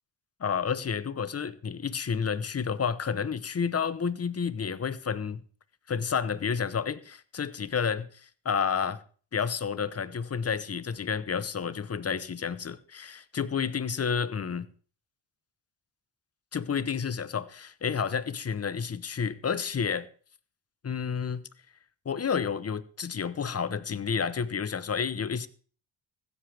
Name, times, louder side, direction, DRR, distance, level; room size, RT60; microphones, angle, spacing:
voice 1, 0.4-5.4 5.9-9.0 9.3-14.7 16.5-20.1 20.8-21.4 22.0-25.5, left 6 dB, 30° left, 1.0 m, -30 dB
15.5 x 13.5 x 3.5 m
cardioid pair, 90°, 46 cm